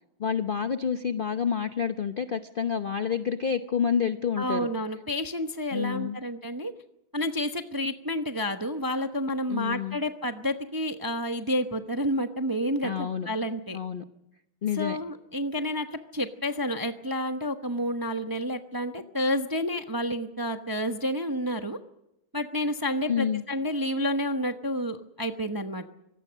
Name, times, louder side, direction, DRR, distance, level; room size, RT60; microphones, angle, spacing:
voice 1, 0.2-4.7 5.7-6.2 9.5-10.0 12.8-13.3 13.7-14.0 14.6-15.0 23.1-23.4, left 7 dB, 70° left, 9 dB, 0.5 m, -28 dB
voice 2, 4.4-6.7 7.1-13.8 14.8-21.8 22.3-25.8, equal, 20° right, 6 dB, 0.5 m, -30 dB
24.5 x 18.5 x 6.4 m, 0.83 s
omnidirectional pair, 2.2 m